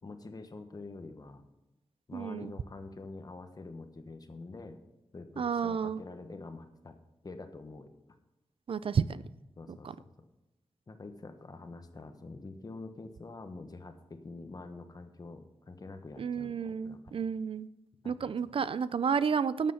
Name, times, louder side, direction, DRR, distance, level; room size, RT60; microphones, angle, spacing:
voice 1, 0.0-1.4 2.1-4.8 5.1-6.9 7.2-8.1 9.6-9.9 10.9-17.2 18.0-18.6, left 3 dB, 40° left, 7 dB, 1.1 m, -46 dB
voice 2, 2.1-2.5 5.4-6.0 8.7-9.2 9.7-9.9 16.2-17.7 18.0-19.7, right 6 dB, 60° right, 16 dB, 0.4 m, -31 dB
12.0 x 7.5 x 5.6 m, 0.98 s
wide cardioid pair, 150°, 11 cm